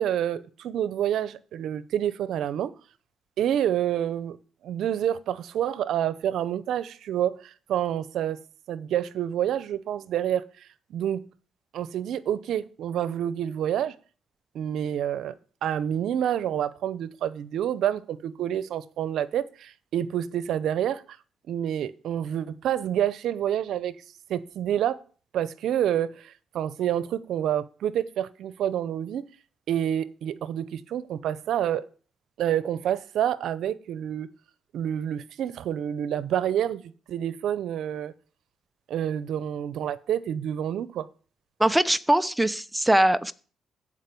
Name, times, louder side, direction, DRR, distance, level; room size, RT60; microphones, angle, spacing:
voice 1, 0.0-2.7 3.4-4.4 4.6-8.4 8.7-11.2 11.7-13.9 14.5-15.3 15.6-21.0 21.5-24.0 24.3-25.0 25.3-29.2 29.7-31.9 32.4-34.3 34.7-36.8 37.1-38.1 38.9-41.1, right 10 dB, 75° right, 0.8 m, -28 dB
voice 2, 41.6-43.3, right 1 dB, 5° right, 0.8 m, -21 dB
14.5 x 5.2 x 8.5 m
cardioid pair, 90°, 0 cm